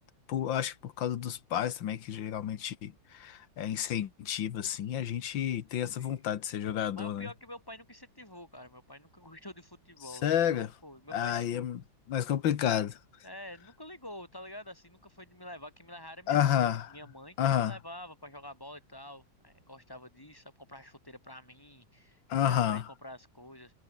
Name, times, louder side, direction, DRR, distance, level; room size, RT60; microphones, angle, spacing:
voice 1, 0.3-2.9 3.2-7.3 10.2-10.7 11.1-11.8 12.1-12.9 16.3-16.9 17.4-17.7 22.3-22.8, left 10 dB, 90° left, 1.9 m, -30 dB
voice 2, 5.9-6.2 6.9-11.7 13.2-23.7, left 1 dB, 10° left, 4.5 m, -48 dB
omnidirectional pair, 2.0 m